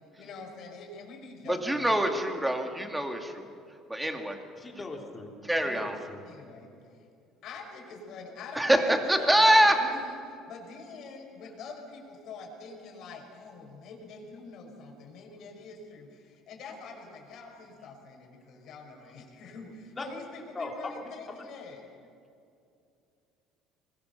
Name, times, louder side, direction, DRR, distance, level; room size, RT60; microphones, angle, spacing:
voice 1, 0.2-1.9 6.2-7.0 7.4-21.9, left 4 dB, 55° left, 1 dB, 5.7 m, -45 dB
voice 2, 1.5-3.4 3.9-4.4 5.4-6.0 8.6-9.7, right 1 dB, 5° right, 4 dB, 2.2 m, -24 dB
voice 3, 4.6-5.3 5.6-6.2 19.9-20.0 20.5-20.9, left 3 dB, 20° left, 1 dB, 3.1 m, -39 dB
25.0 x 21.5 x 6.8 m, 2.5 s
cardioid pair, 135°, 0 cm